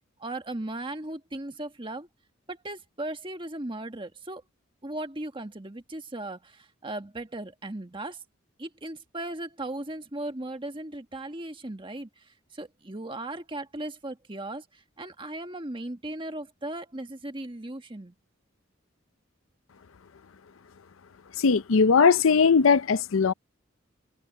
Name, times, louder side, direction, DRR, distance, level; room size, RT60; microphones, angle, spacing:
voice 1, 0.2-2.1 2.5-4.4 4.8-8.2 8.6-18.1, right 1 dB, 25° right, 1.6 m, -37 dB
voice 2, 21.4-23.3, left 5 dB, 80° left, 0.6 m, -19 dB
head